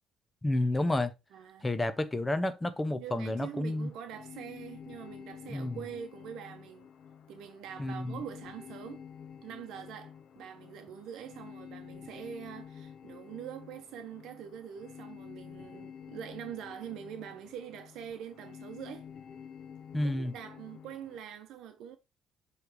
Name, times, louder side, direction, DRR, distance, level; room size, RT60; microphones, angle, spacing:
voice 1, 0.4-1.1 1.6-3.9 5.5-5.8 7.8-8.2 19.9-20.3, left 1 dB, 10° left, 0.7 m, -30 dB
voice 2, 1.3-1.7 2.9-6.9 7.3-9.0 9.4-19.1 20.0-22.0, right 9 dB, 70° right, 0.8 m, -44 dB
sound 1, 3.3-21.2, left 7 dB, 50° left, 0.7 m, -49 dB
7.6 x 3.3 x 4.8 m
cardioid pair, 140°, 0 cm